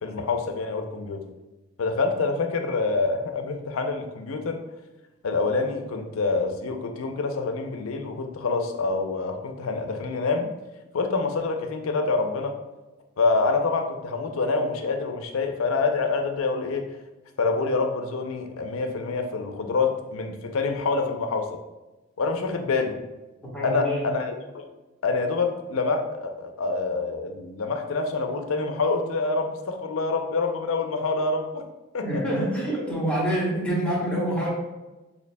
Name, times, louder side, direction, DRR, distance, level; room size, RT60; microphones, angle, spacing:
voice 1, 0.0-1.2 1.8-4.6 5.2-10.5 10.9-12.6 13.2-16.9 17.4-21.5 22.2-23.0 23.6-24.7 25.0-31.6 31.9-32.2, left 3 dB, 85° left, 5 dB, 0.5 m, -26 dB
voice 2, 23.5-24.1 32.0-34.5, right 1 dB, 5° left, -7 dB, 1.3 m, -26 dB
6.6 x 2.8 x 2.2 m, 1.1 s
head